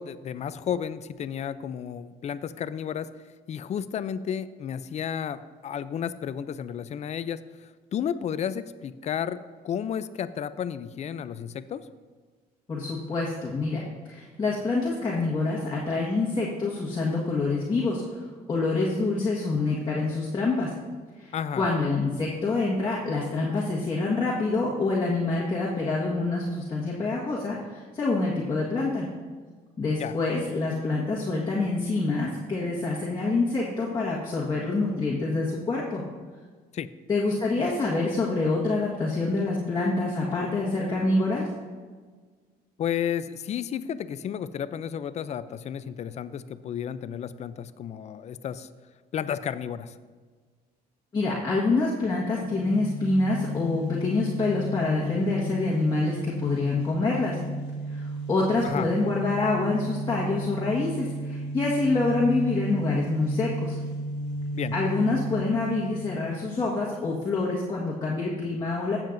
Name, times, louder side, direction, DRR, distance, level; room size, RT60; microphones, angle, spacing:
voice 1, 0.0-3.1 3.5-11.8 21.3-21.6 30.0-30.1 36.7-36.9 42.8-48.7 49.1-50.0 58.6-58.9 64.5-64.7, left 8 dB, 40° left, 14 dB, 0.4 m, -32 dB
voice 2, 12.7-18.0 18.5-20.7 21.2-29.1 29.8-36.0 37.1-41.5 51.1-57.4 57.9-63.8 64.7-69.0, left 3 dB, 25° left, -5 dB, 1.5 m, -26 dB
sound 1, 52.4-66.9, equal, 85° left, 1.5 m, -34 dB
14.5 x 7.4 x 2.6 m, 1.5 s
cardioid pair, 110°, 17 cm